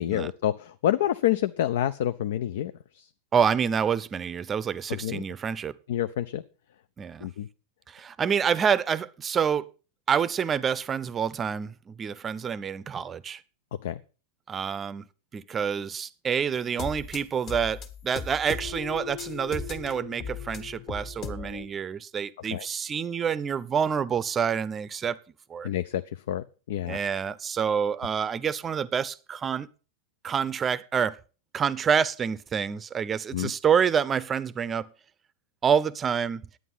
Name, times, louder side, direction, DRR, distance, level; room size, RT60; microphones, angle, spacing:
voice 1, 0.0-3.1 4.9-5.2 5.9-6.4 7.2-7.5 13.8-14.0 22.5-22.7 25.6-27.0 33.3-33.5, left 12 dB, 55° left, 12 dB, 0.5 m, -28 dB
voice 2, 3.3-5.7 7.0-7.3 7.9-9.7 10.1-13.4 14.5-15.0 15.3-25.2 25.5-25.7 26.9-29.7 30.2-31.2 31.5-34.9 35.6-36.4, right 7 dB, 20° right, 18 dB, 0.6 m, -27 dB
sound 1, 16.5-21.7, left 5 dB, 35° left, 1.4 m, -37 dB
11.0 x 9.2 x 5.6 m, 0.36 s
figure-of-eight pair, 90°, 0 cm